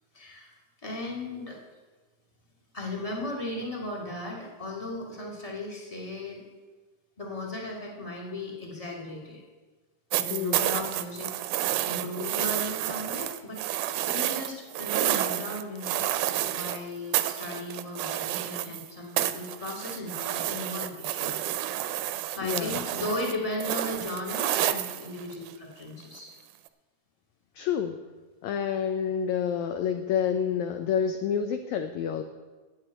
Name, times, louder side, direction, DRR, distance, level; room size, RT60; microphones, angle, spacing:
voice 1, 0.1-0.5 0.8-1.6 2.7-6.4 7.2-9.4 10.1-11.3 11.8-13.6 14.1-16.1 16.4-21.5 22.3-26.3, left 1 dB, 15° left, -2 dB, 1.3 m, -36 dB
sound 1, 10.1-16.8 17.1-18.9 19.2-25.5 26.7-26.8, right 13 dB, 80° right, 1.9 m, -30 dB
voice 2, 10.3-10.7 22.4-22.8 27.6-28.0 28.4-32.2, left 8 dB, 85° left, 8 dB, 1.6 m, -28 dB
9.1 x 8.0 x 8.9 m, 1.3 s
omnidirectional pair, 4.0 m